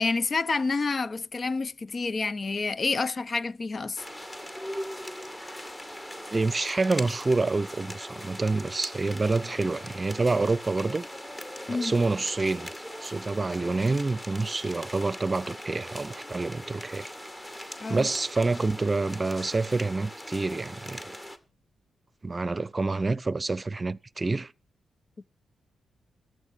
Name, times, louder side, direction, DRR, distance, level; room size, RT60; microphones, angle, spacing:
voice 1, 0.0-4.0 11.7-11.9 17.8-18.1, left 4 dB, 45° left, 0.6 m, -28 dB
sound 1, 4.0-21.4, equal, 20° left, 2.2 m, -40 dB
voice 2, 6.3-11.0 11.7-12.7 13.0-17.1 17.9-21.2 22.2-24.5, right 3 dB, 30° right, 0.7 m, -27 dB
14.5 x 9.4 x 5.9 m
supercardioid pair, 50°, 0 cm